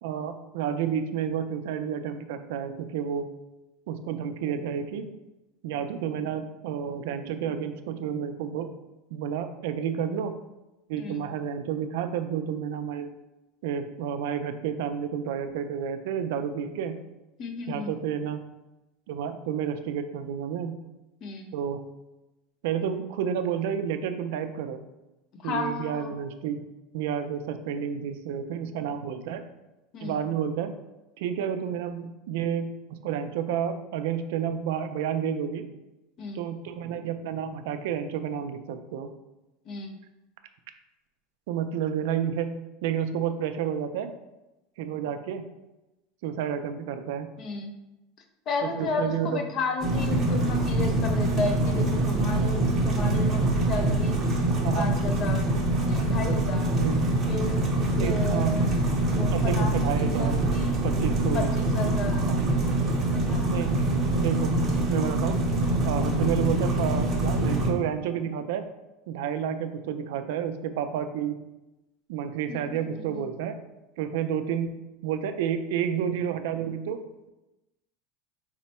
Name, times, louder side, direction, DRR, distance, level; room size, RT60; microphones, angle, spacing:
voice 1, 0.0-3.3 3.9-5.1 5.6-8.7 9.1-10.4 10.9-13.1 13.6-17.0 17.7-18.4 19.1-20.8 21.5-21.8 22.6-24.8 25.4-26.6 26.9-29.4 30.0-30.7 31.2-35.7 36.3-39.1 41.5-44.1 44.8-45.5 46.2-47.3 48.8-49.4 53.0-53.1 54.6-54.9 56.8-57.1 58.0-58.6 59.3-61.5 62.3-62.5 63.5-63.7 64.2-64.5 64.9-65.4 65.8-68.6 69.1-71.4 72.1-73.6 74.0-77.0, right 8 dB, 70° right, 9 dB, 0.3 m, -30 dB
voice 2, 17.4-17.9 21.2-21.5 25.3-26.1 29.9-30.2 36.2-36.4 39.6-40.0 47.4-47.7 48.5-54.3 54.7-55.5 55.9-56.8 57.3-57.7 58.0-58.7 59.0-60.8 61.3-62.3 63.1-63.6 72.5-73.3, left 3 dB, 35° left, 5 dB, 0.5 m, -33 dB
sound 1, 49.8-67.7, right 1 dB, 20° right, 0.6 m, -25 dB
4.3 x 2.1 x 4.1 m, 0.99 s
supercardioid pair, 160°, 0 cm